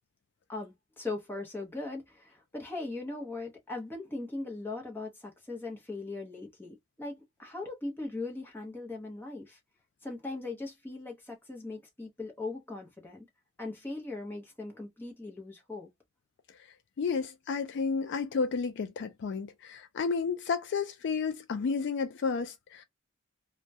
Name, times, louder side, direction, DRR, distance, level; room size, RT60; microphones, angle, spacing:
voice 1, 0.5-9.6 10.0-13.3 13.6-15.9, left 2 dB, 10° left, 0.7 m, -39 dB
voice 2, 17.0-22.8, left 5 dB, 55° left, 0.3 m, -31 dB
2.2 x 2.1 x 2.6 m
head